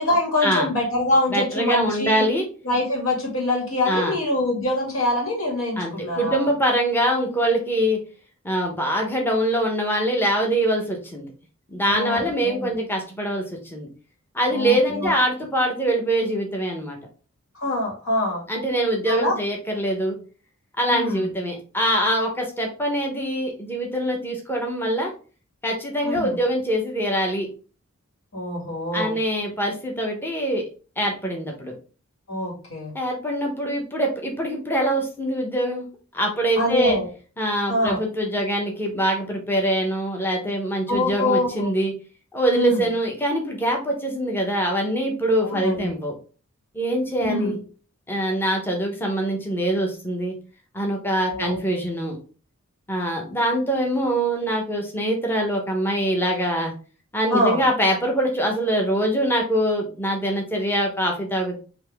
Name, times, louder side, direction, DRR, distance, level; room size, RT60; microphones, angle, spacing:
voice 1, 0.0-2.2 2.7-6.5 11.8-12.7 14.5-15.1 17.6-18.4 19.1-19.4 20.9-21.3 26.0-26.4 28.3-29.1 32.3-32.9 36.6-37.1 37.7-38.0 40.9-41.7 42.5-42.8 45.4-46.0 47.2-47.6 51.3-51.9 57.3-57.6, left 1 dB, 90° left, -2 dB, 1.9 m, -24 dB
voice 2, 1.3-2.5 3.9-4.1 5.8-8.0 8.4-11.3 11.7-13.9 14.3-17.0 18.5-20.2 20.8-25.1 25.6-27.5 28.9-30.6 31.0-31.7 32.9-35.8 36.1-37.0 37.4-41.9 42.3-46.1 46.7-47.6 48.1-50.3 50.7-52.2 52.9-56.7 57.1-61.6, right 1 dB, 10° left, 1 dB, 0.8 m, -24 dB
4.1 x 2.9 x 3.4 m, 0.37 s
head